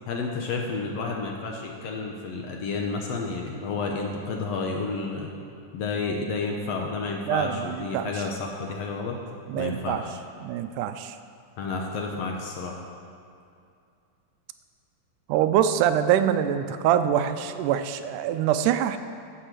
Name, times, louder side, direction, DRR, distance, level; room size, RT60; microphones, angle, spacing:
voice 1, 0.1-5.3 5.7-9.2 9.6-10.1 11.6-12.8, left 4 dB, 70° left, 0 dB, 1.7 m, -31 dB
voice 2, 7.3-8.2 9.5-10.0 10.4-11.2 15.3-19.0, right 10 dB, 85° right, 10 dB, 2.1 m, -24 dB
13.5 x 5.4 x 7.5 m, 2.4 s
omnidirectional pair, 3.6 m